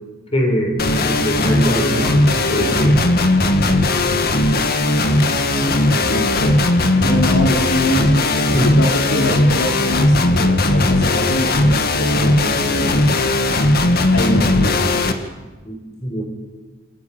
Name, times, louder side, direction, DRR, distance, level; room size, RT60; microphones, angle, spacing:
voice 1, 0.3-3.0 8.5-8.7 15.6-16.2, equal, 30° left, 0 dB, 7.2 m, -22 dB
sound 1, 0.8-15.1, left 2 dB, 50° left, 2.0 m, -17 dB
voice 2, 5.5-6.8 7.0-13.3 14.1-15.0, left 1 dB, 80° left, 2 dB, 4.8 m, -24 dB
28.0 x 26.5 x 7.4 m, 1.3 s
head